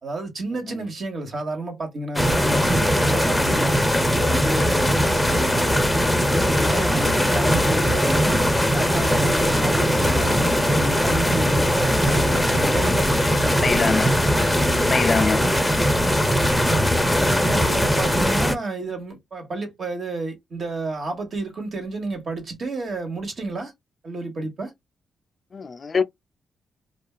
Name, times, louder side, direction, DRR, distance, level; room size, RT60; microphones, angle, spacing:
voice 1, 0.0-3.8 4.1-5.9 6.3-14.0 14.5-14.9 17.2-23.7 24.0-24.7, right 2 dB, 55° right, 1.1 m, -31 dB
sound 1, 2.2-18.6, equal, 5° left, 0.6 m, -20 dB
voice 2, 13.6-14.1 14.9-15.4 25.5-26.0, left 4 dB, 45° left, 0.3 m, -23 dB
2.4 x 2.3 x 2.3 m
supercardioid pair, 60°, 0 cm